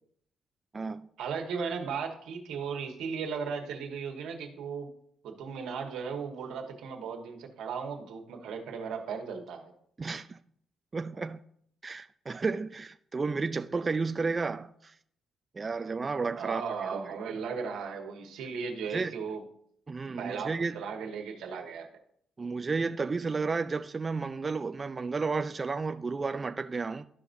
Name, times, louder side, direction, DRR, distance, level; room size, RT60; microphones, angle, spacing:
voice 1, 1.2-4.9 5.2-9.7 16.4-19.4 20.1-21.9, right 6 dB, 85° right, 1.4 m, -36 dB
voice 2, 10.0-10.4 10.9-11.4 11.8-14.9 15.5-17.2 18.9-19.1 19.9-20.8 22.4-27.1, right 4 dB, 30° right, 0.3 m, -32 dB
13.5 x 5.0 x 2.6 m
cardioid pair, 90°, 0 cm